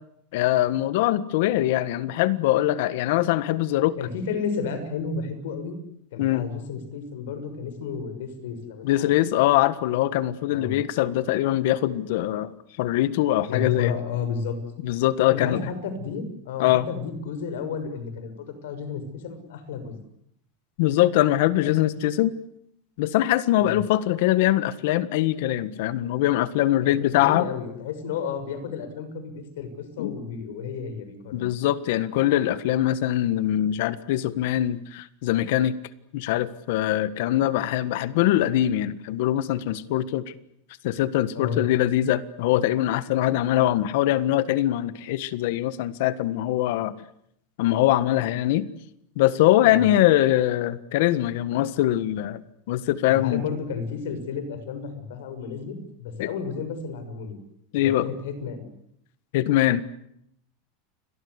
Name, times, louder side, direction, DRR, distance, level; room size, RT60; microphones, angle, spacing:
voice 1, 0.3-4.0 6.2-6.5 8.8-12.5 12.8-13.9 14.8-15.7 16.6-16.9 20.8-22.3 23.0-27.5 30.0-30.1 31.3-35.7 36.1-40.2 40.8-46.9 47.6-48.7 49.2-52.4 52.7-53.4 56.2-56.3 57.7-58.1 59.3-59.8, left 14 dB, 55° left, 15 dB, 1.5 m, -22 dB
voice 2, 4.0-5.8 6.1-9.1 10.5-10.8 13.5-14.6 15.3-20.0 23.6-23.8 26.8-31.5 41.3-41.6 49.7-49.9 53.1-57.4 57.7-58.7, left 6 dB, 75° left, 10 dB, 6.5 m, -32 dB
30.0 x 23.0 x 8.1 m, 0.74 s
supercardioid pair, 175°, 0 cm